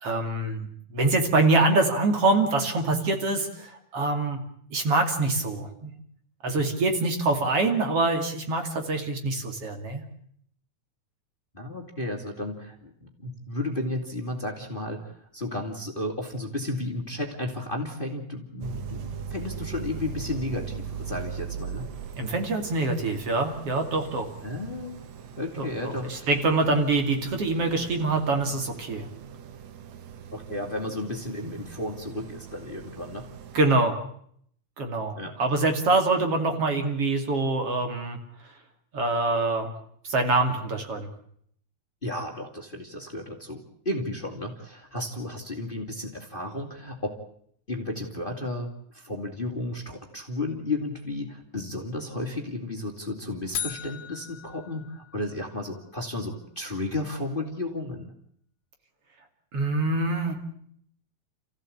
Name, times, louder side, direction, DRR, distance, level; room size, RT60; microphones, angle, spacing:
voice 1, 0.0-4.4 4.7-5.9 6.4-10.0 22.2-24.3 25.6-29.1 33.5-33.9 34.8-38.2 38.9-39.7 40.0-41.1 59.5-60.3, right 2 dB, 50° right, 5 dB, 3.4 m, -25 dB
voice 2, 11.5-21.9 24.4-25.0 25.4-26.3 30.3-33.3 35.2-35.4 42.0-47.2 47.7-58.1, left 1 dB, 20° left, 3 dB, 2.6 m, -33 dB
sound 1, 18.6-33.7, right 7 dB, 65° right, 2.6 m, -40 dB
sound 2, 53.5-55.7, left 9 dB, 60° left, 2.6 m, -37 dB
29.5 x 15.5 x 8.6 m, 0.67 s
omnidirectional pair, 3.4 m